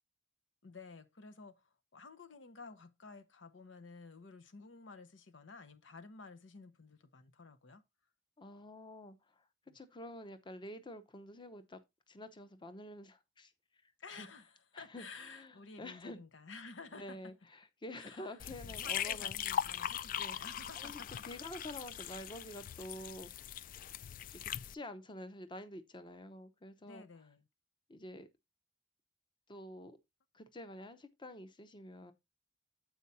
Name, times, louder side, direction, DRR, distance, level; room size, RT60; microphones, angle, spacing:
voice 1, 0.6-7.8 9.7-9.8 14.0-17.3 18.0-18.4 18.6-21.2 26.8-27.5, left 4 dB, 85° left, 0.9 m, -52 dB
voice 2, 8.4-9.3 9.7-11.8 12.1-13.5 13.8-14.3 14.7-16.2 16.9-19.4 20.2-20.4 20.8-23.3 24.3-27.1 27.9-28.3 29.5-30.0 30.3-32.1, left 1 dB, 25° left, 0.8 m, -48 dB
sound 1, 18.4-24.7, left 9 dB, 45° left, 0.3 m, -40 dB
8.1 x 4.7 x 4.1 m
head